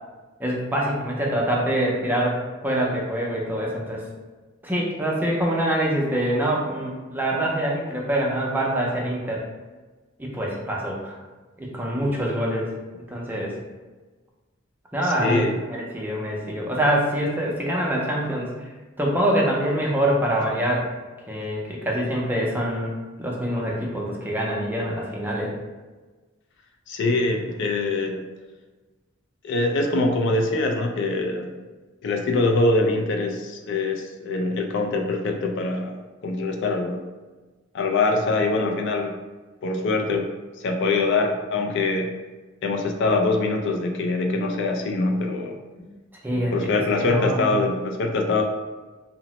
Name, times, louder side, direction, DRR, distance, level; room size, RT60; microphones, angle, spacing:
voice 1, 0.4-4.0 4.6-9.4 10.2-11.2 11.6-12.7 13.1-13.5 14.9-18.5 19.0-20.9 21.3-22.9 23.2-25.5 46.2-47.5, right 1 dB, 10° right, -3 dB, 0.5 m, -25 dB
voice 2, 15.0-15.6 26.9-28.2 29.4-31.5 32.0-36.0 36.2-37.0 37.7-39.2 39.6-40.3 40.6-42.1 42.6-45.6 46.3-48.4, left 3 dB, 60° left, 3 dB, 0.3 m, -23 dB
2.9 x 2.0 x 2.9 m, 1.2 s
head